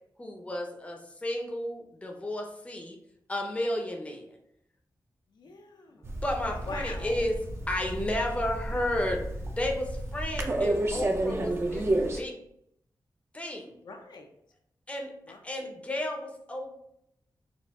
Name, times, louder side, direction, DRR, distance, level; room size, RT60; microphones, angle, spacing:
voice 1, 0.2-3.0 3.3-4.3 5.9-7.4 7.7-9.3 9.6-11.9 12.1-12.4 13.3-13.8 14.9-15.1 15.4-16.8, left 1 dB, 15° left, 1 dB, 0.6 m, -32 dB
voice 2, 5.3-6.1 6.6-7.2 13.8-14.3 15.2-15.7, left 3 dB, 65° left, 3 dB, 0.5 m, -44 dB
sound 1, 6.0-12.2, right 1 dB, 35° right, 0.5 m, -31 dB
4.3 x 2.4 x 3.5 m, 0.76 s
wide cardioid pair, 150°, 8 cm